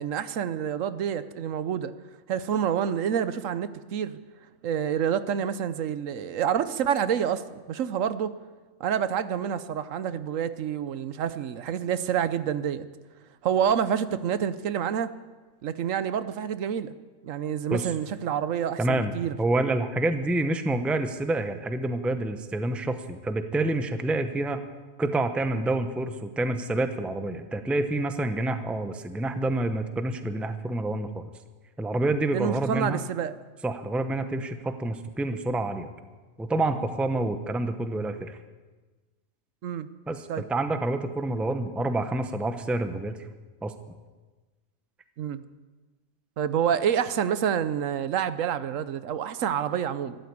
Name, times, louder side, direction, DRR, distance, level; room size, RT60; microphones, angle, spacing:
voice 1, 0.0-1.9 2.3-4.2 4.6-8.3 8.8-12.9 13.4-15.1 15.6-16.9 17.2-19.3 32.3-33.3 39.6-39.9 40.3-40.4 45.2-45.4 46.4-50.2, right 8 dB, 75° right, 13 dB, 1.1 m, -28 dB
voice 2, 18.8-19.1 19.4-24.6 25.0-31.3 31.8-33.0 33.6-35.9 36.4-38.4 40.1-43.2 43.6-43.7, right 2 dB, ahead, 8 dB, 0.6 m, -28 dB
13.5 x 12.0 x 8.4 m, 1.3 s
omnidirectional pair, 1.4 m